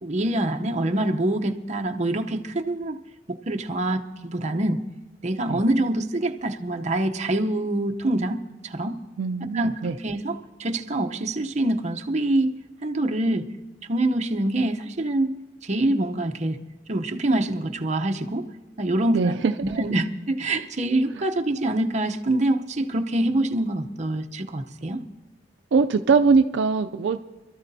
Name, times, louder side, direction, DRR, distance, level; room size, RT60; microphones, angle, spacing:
voice 1, 0.0-3.0 3.3-4.8 5.2-9.0 9.5-9.7 10.0-12.5 12.8-13.5 13.9-15.4 15.6-16.6 16.9-18.5 18.8-25.0, right 1 dB, 40° right, 4 dB, 0.8 m, -25 dB
voice 2, 9.2-10.0 19.1-19.5 25.7-27.2, right 4 dB, 75° right, 7 dB, 0.4 m, -21 dB
26.5 x 13.0 x 2.7 m, 1.2 s
head